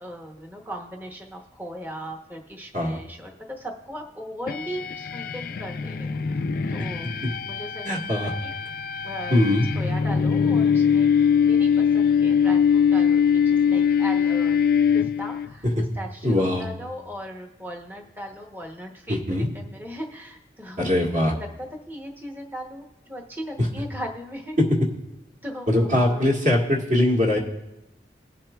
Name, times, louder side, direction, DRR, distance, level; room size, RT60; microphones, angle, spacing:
voice 1, 0.0-6.4 6.7-7.1 7.4-8.5 9.0-9.4 9.7-14.6 14.9-15.7 15.9-19.2 19.5-20.9 21.3-21.5 21.9-24.6 25.4-26.3, equal, 10° right, 1 dB, 0.9 m, -38 dB
sound 1, 4.5-15.5, left 7 dB, 55° left, 0.3 m, -22 dB
voice 2, 7.8-8.3 9.3-9.7 15.6-15.8 16.2-16.7 19.1-19.5 20.8-21.3 23.6-23.7 24.6-24.8 25.7-27.4, left 1 dB, 45° right, -1 dB, 1.6 m, -21 dB
20.5 x 7.4 x 2.3 m, 0.95 s
head